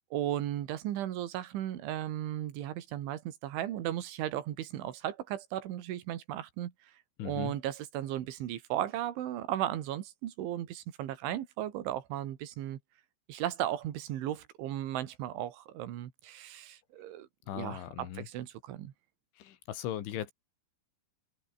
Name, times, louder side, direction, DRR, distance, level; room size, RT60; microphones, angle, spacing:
voice 1, 0.1-6.7 7.2-12.8 13.3-17.3 17.5-18.9, right 12 dB, 85° right, 4.4 m, -36 dB
voice 2, 7.2-7.5 17.5-18.3 19.4-20.3, left 11 dB, 90° left, 4.7 m, -38 dB
omnidirectional pair, 5.3 m